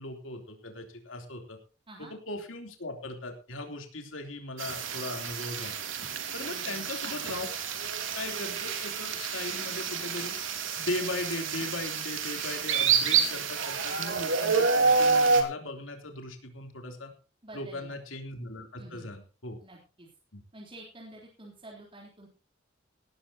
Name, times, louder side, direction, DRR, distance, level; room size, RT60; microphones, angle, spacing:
voice 1, 0.0-1.6 2.0-5.8 6.3-7.5 8.1-10.3 10.8-17.1 17.5-19.6 20.3-20.4, left 2 dB, 90° left, 4 dB, 3.5 m, -38 dB
sound 1, 4.6-15.4, right 5 dB, 80° right, 3.0 m, -28 dB
voice 2, 6.4-7.3 17.4-18.0 18.8-19.1 19.6-20.1 20.5-22.3, right 1 dB, 25° right, -2 dB, 3.7 m, -49 dB
17.5 x 14.0 x 2.9 m, 0.34 s
head